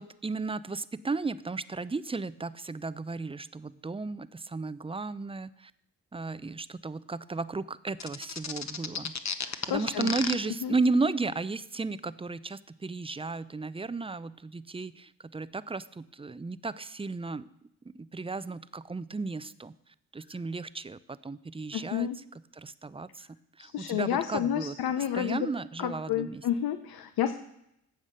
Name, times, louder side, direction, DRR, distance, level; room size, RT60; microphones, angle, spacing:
voice 1, 0.0-5.7 6.1-9.1 9.7-17.5 17.9-19.7 20.1-22.1 22.5-23.3 23.6-24.8 25.1-26.4, right 3 dB, 15° right, 16 dB, 0.5 m, -34 dB
sound 1, 8.0-10.3, left 6 dB, 45° left, 1.1 m, -32 dB
voice 2, 9.4-10.1 10.6-10.7 21.7-22.2 23.6-25.5 25.8-27.3, left 10 dB, 70° left, 10 dB, 0.8 m, -30 dB
10.0 x 7.2 x 6.6 m, 0.78 s
cardioid pair, 60°, 38 cm